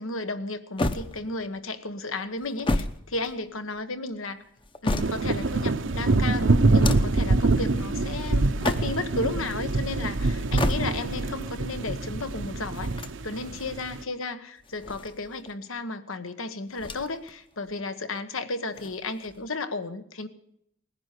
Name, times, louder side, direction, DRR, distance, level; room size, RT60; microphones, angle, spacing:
voice 1, 0.0-4.4 4.8-12.9 13.2-20.3, left 3 dB, 80° left, 11 dB, 1.3 m, -33 dB
sound 1, 0.8-1.6 2.4-3.8 4.4-5.5 6.6-7.3 8.4-9.2 10.4-11.2 12.7-13.7 14.6-15.5 16.7-17.3 17.6-17.7 18.7-19.5, left 1 dB, 25° left, 0.8 m, -31 dB
sound 2, 5.0-14.0, right 3 dB, 65° right, 0.7 m, -25 dB
19.5 x 10.5 x 6.7 m, 0.73 s
head